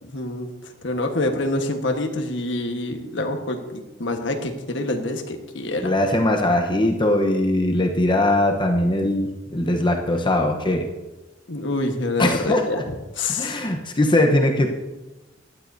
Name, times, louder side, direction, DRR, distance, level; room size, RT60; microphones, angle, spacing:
voice 1, 0.0-0.5 0.8-5.9 11.5-12.8 13.1-13.5, left 2 dB, 80° left, 5 dB, 1.4 m, -26 dB
voice 2, 5.8-10.9 12.2-12.8 13.3-14.7, left 1 dB, 25° left, 3 dB, 1.0 m, -20 dB
18.5 x 12.5 x 2.7 m, 1.1 s
head